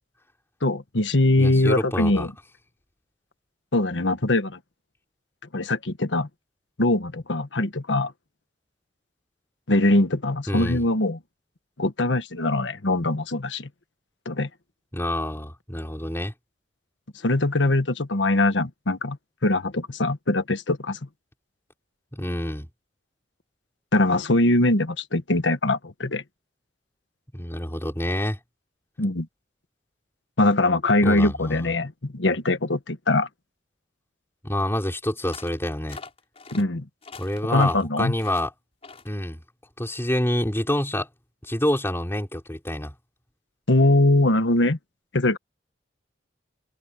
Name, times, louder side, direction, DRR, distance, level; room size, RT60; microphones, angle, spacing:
voice 1, 0.6-2.3 3.7-4.6 5.5-6.3 6.8-8.1 9.7-11.2 11.8-13.7 14.2-14.5 17.2-19.2 19.4-21.0 23.9-26.2 29.0-29.3 30.4-33.3 36.5-36.9 37.5-38.1 43.7-44.8 45.1-45.4, left 2 dB, 85° left, 1.4 m, -22 dB
voice 2, 1.4-2.3 10.5-10.8 14.9-16.3 22.1-22.7 27.3-28.4 31.0-31.7 34.4-36.0 37.2-38.5 39.0-39.4 39.8-41.1 41.4-42.9, left 1 dB, 15° left, 4.8 m, -27 dB
sound 1, 35.3-35.6 35.9-36.6 37.0-37.8 38.2-38.5 38.8-39.1, left 4 dB, 35° left, 5.5 m, -43 dB
head